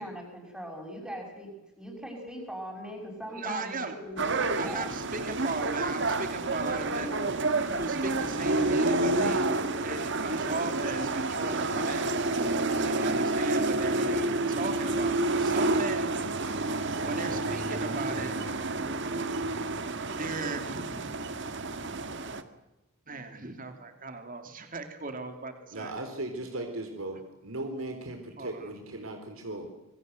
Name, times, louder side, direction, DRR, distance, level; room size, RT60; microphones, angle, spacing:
voice 1, 0.0-4.9, equal, 5° right, -2 dB, 6.0 m, -40 dB
voice 2, 3.3-4.0 4.6-9.5 9.8-12.1 12.9-16.3 17.0-18.3 19.8-21.3 23.1-25.9 28.4-28.6, right 3 dB, 40° right, 7 dB, 2.9 m, -37 dB
sound 1, 4.2-22.4, right 2 dB, 60° right, 1.9 m, -29 dB
voice 3, 25.7-27.2 27.4-29.7, right 2 dB, 75° right, 5 dB, 3.8 m, -37 dB
27.0 x 23.0 x 8.0 m, 1.0 s
head